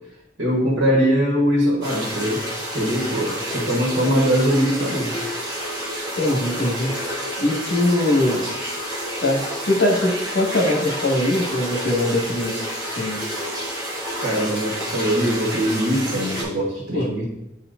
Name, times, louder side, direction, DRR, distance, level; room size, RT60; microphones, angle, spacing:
voice 1, 0.4-2.4 2.7-5.1 14.2-17.2, equal, 80° right, -2 dB, 1.4 m, -21 dB
sound 1, 1.8-16.4, equal, 25° right, 2.4 m, -29 dB
voice 2, 6.2-6.9 7.4-8.4 9.2-12.7 12.9-13.2 16.9-17.1, left 1 dB, 80° left, 0 dB, 1.6 m, -21 dB
9.4 x 4.3 x 2.6 m, 0.88 s
head